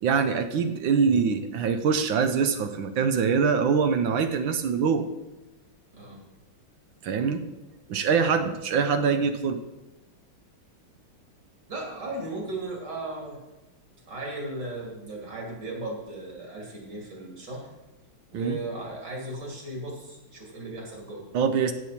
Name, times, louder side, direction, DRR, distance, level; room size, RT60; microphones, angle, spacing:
voice 1, 0.0-5.1 7.0-7.4 7.9-9.6 18.3-18.6 21.3-21.7, right 6 dB, 75° right, 8 dB, 1.4 m, -24 dB
voice 2, 11.7-13.4 14.1-17.7 18.3-21.3, right 2 dB, 60° right, -2 dB, 3.6 m, -36 dB
15.5 x 6.9 x 4.3 m, 1.0 s
omnidirectional pair, 2.2 m